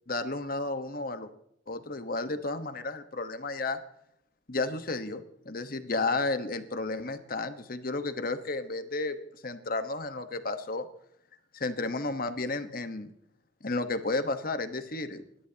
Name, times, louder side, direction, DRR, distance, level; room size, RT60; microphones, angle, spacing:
voice 1, 0.1-1.3 1.7-3.8 4.5-9.2 9.4-10.9 11.5-13.1 13.6-15.2, left 3 dB, 50° left, 9 dB, 1.2 m, -32 dB
28.5 x 12.5 x 2.9 m, 0.74 s
head